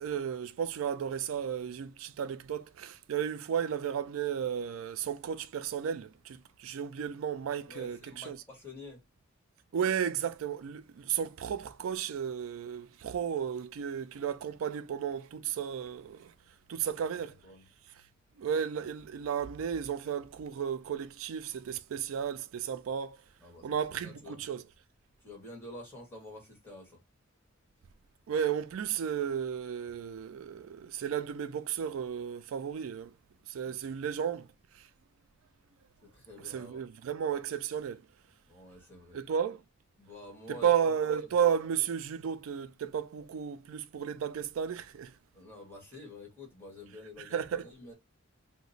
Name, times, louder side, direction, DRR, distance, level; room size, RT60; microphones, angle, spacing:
voice 1, 0.0-8.4 9.7-16.3 16.7-17.4 18.4-23.2 23.6-24.6 28.3-33.1 33.5-34.5 34.7-34.9 36.4-38.0 39.1-39.6 40.5-45.1 47.2-47.7, right 8 dB, 80° right, 0.4 m, -33 dB
voice 2, 7.7-9.0 17.1-17.6 23.4-24.4 25.2-27.0 33.6-33.9 36.1-36.8 38.5-39.2 40.0-40.7 45.3-47.9, left 1 dB, 10° left, 1.5 m, -49 dB
2.9 x 2.1 x 3.9 m
head